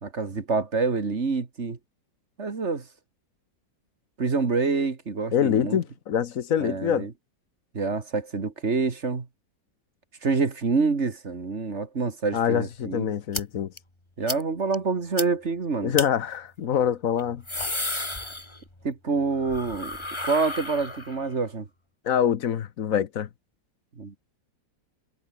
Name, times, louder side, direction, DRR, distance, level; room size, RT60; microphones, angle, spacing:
voice 1, 0.0-1.8 2.4-2.9 4.2-5.8 6.6-7.1 7.7-9.3 10.2-13.1 14.2-15.9 18.8-20.0 20.2-21.7 24.0-24.1, right 4 dB, 40° right, 2.1 m, -27 dB
voice 2, 5.3-7.1 12.3-13.7 15.8-17.4 22.0-23.3, left 9 dB, 55° left, 1.2 m, -25 dB
sound 1, 13.3-13.4 13.8-13.9 14.3-14.4 14.7-14.8 15.2-15.3 15.9-16.1 17.2-18.9 19.2-21.3, left 2 dB, 15° left, 2.5 m, -32 dB
omnidirectional pair, 1.9 m